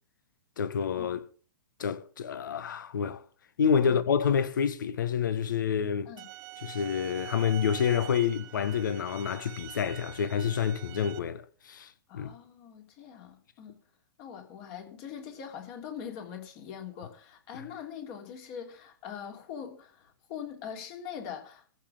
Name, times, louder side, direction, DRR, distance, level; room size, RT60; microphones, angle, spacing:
voice 1, 0.6-1.2 1.8-3.2 3.6-6.1 6.6-12.3 17.5-17.6, left 7 dB, 65° left, 1.1 m, -28 dB
sound 1, 6.2-11.2, right 16 dB, 35° right, 1.4 m, -45 dB
voice 2, 12.1-13.8 14.2-21.8, left 8 dB, 40° left, 3.1 m, -42 dB
14.5 x 5.6 x 7.8 m
figure-of-eight pair, 110°, 11 cm